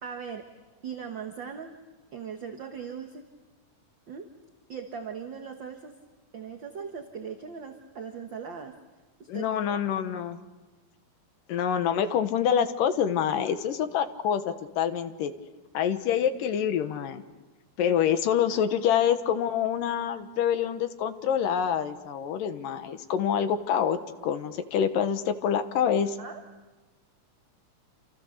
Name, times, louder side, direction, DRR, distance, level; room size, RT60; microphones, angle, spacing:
voice 1, 0.0-0.5 0.8-1.7 2.1-3.2 4.1-4.3 4.7-5.9 6.3-8.7 9.2-9.8 26.2-26.4, right 6 dB, 45° right, 4 dB, 1.6 m, -39 dB
voice 2, 9.3-10.4 11.5-15.3 15.7-17.2 17.8-24.0 24.2-26.2, left 8 dB, 90° left, 9 dB, 3.0 m, -26 dB
28.5 x 28.0 x 6.7 m, 1.2 s
omnidirectional pair, 3.8 m